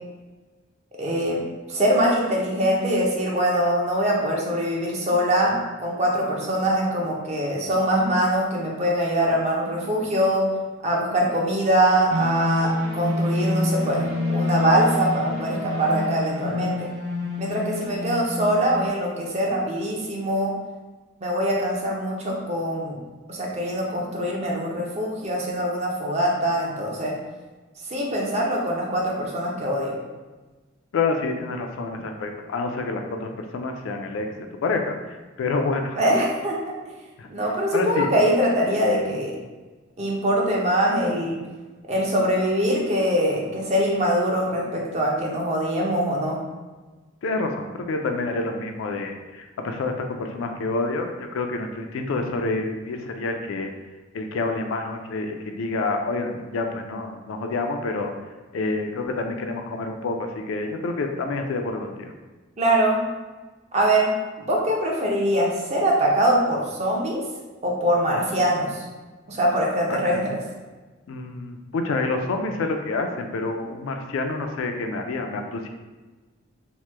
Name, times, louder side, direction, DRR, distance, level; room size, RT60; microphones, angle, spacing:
voice 1, 1.0-1.4 1.7-10.4 10.8-16.9 17.4-20.5 21.2-23.0 23.3-27.2 27.9-30.0 36.0-36.8 37.3-39.4 40.0-41.4 41.9-46.4 62.6-63.0 63.7-64.1 64.4-67.2 67.6-68.8 69.3-70.4, right 1 dB, 35° right, -2 dB, 0.5 m, -23 dB
sound 1, 12.1-18.9, left 2 dB, 85° right, 0.5 m, -27 dB
voice 2, 30.9-35.0 35.4-36.0 37.2-37.3 37.7-38.1 47.2-53.7 54.1-58.1 58.5-62.1 69.9-70.4 71.1-75.7, left 3 dB, 75° left, 4 dB, 0.3 m, -28 dB
3.0 x 2.1 x 3.2 m, 1.3 s
head